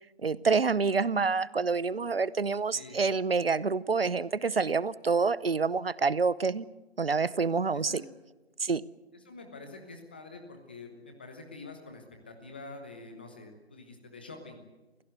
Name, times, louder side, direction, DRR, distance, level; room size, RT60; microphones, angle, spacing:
voice 1, 0.2-6.6 7.0-8.0 8.6-8.8, right 4 dB, 60° right, 20 dB, 0.8 m, -27 dB
voice 2, 2.7-3.0 7.7-8.1 9.1-14.6, left 3 dB, 10° left, 5 dB, 1.0 m, -46 dB
26.5 x 16.5 x 7.9 m, 1.1 s
figure-of-eight pair, 165°, 32 cm